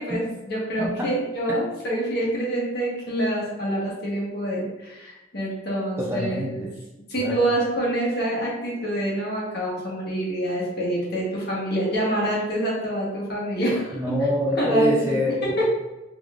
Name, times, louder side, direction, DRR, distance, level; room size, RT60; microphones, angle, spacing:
voice 1, 0.1-6.7 6.9-14.0 14.6-15.2, right 1 dB, 60° left, -5 dB, 1.2 m, -26 dB
voice 2, 0.8-1.1 1.5-1.6 6.0-6.7 7.2-7.4 13.9-15.6, left 1 dB, 15° right, -2 dB, 0.5 m, -26 dB
3.6 x 3.2 x 2.5 m, 1.0 s
head